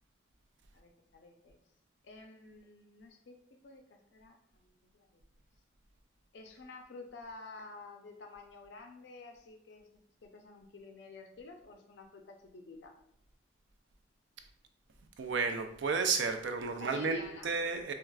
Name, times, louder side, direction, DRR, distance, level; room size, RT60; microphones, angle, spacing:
voice 1, 0.7-1.6 2.0-5.2 6.3-9.9 10.2-13.0 16.8-17.5, left 3 dB, 65° left, 4 dB, 0.4 m, -51 dB
voice 2, 15.2-17.9, right 4 dB, 75° right, 6 dB, 0.4 m, -32 dB
4.4 x 2.3 x 2.3 m, 0.74 s
head